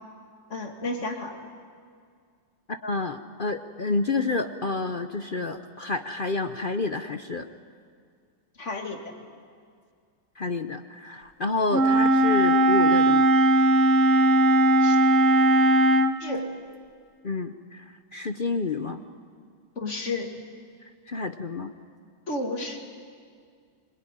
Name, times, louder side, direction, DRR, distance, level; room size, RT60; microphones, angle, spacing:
voice 1, 0.5-1.4 8.6-9.0 14.8-15.0 16.2-16.5 19.8-20.3 22.3-22.8, left 2 dB, 40° left, 3 dB, 2.8 m, -32 dB
voice 2, 2.7-7.5 10.4-13.3 17.2-17.8 18.1-19.0 21.1-21.7, left 3 dB, 60° left, 9 dB, 0.5 m, -29 dB
Wind instrument woodwind instrument, 11.7-16.2, right 1 dB, 40° right, 1.2 m, -19 dB
24.5 x 22.0 x 10.0 m, 2.1 s
omnidirectional pair, 2.1 m